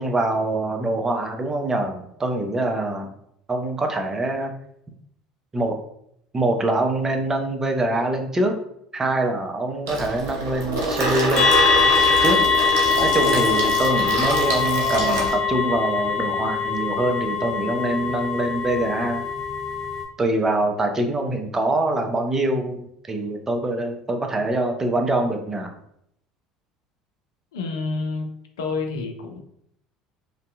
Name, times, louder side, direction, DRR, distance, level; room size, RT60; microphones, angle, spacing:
voice 1, 0.0-3.1 3.5-4.5 5.5-5.7 6.3-8.5 8.9-11.5 12.2-12.4 13.0-19.2 20.2-25.7, right 2 dB, 20° right, 4 dB, 0.5 m, -24 dB
Water tap faucet / Sink (filling or washing), 9.9-15.3, right 2 dB, 75° right, 0.7 m, -25 dB
sound 1, 11.4-20.0, left 5 dB, 30° left, 0.9 m, -22 dB
voice 2, 27.5-29.4, left 3 dB, 80° left, 3 dB, 0.4 m, -29 dB
2.6 x 2.2 x 2.4 m, 0.72 s
hypercardioid pair, 65°, 2 cm